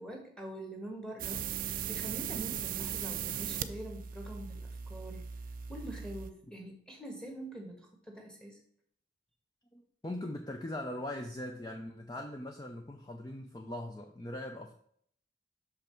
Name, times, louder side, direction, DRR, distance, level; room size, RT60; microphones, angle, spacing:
voice 1, 0.0-5.2 5.7-8.6, right 1 dB, 5° left, 1 dB, 1.4 m, -45 dB
sound 1, 1.2-6.3, right 8 dB, 45° right, 0.4 m, -38 dB
voice 2, 9.7-14.7, left 1 dB, 20° left, 3 dB, 0.5 m, -41 dB
6.2 x 5.6 x 4.4 m, 0.65 s
head